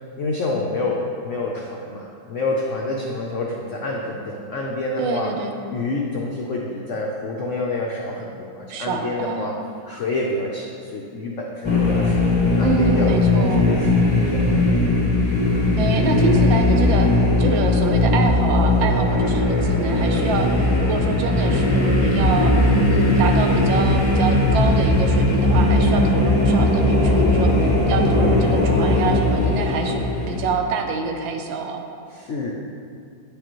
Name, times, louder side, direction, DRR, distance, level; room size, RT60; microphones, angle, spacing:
voice 1, 0.2-5.3 5.7-9.5 9.9-14.8 32.1-32.5, left 2 dB, 85° left, -1 dB, 0.6 m, -28 dB
voice 2, 5.0-5.5 8.7-9.6 12.6-13.6 15.8-17.1 17.4-22.5 22.9-31.8, right 4 dB, 90° right, 4 dB, 1.4 m, -26 dB
sound 1, 11.6-30.6, left 2 dB, 45° left, 0.3 m, -18 dB
9.0 x 5.0 x 3.0 m, 2.4 s
omnidirectional pair, 2.0 m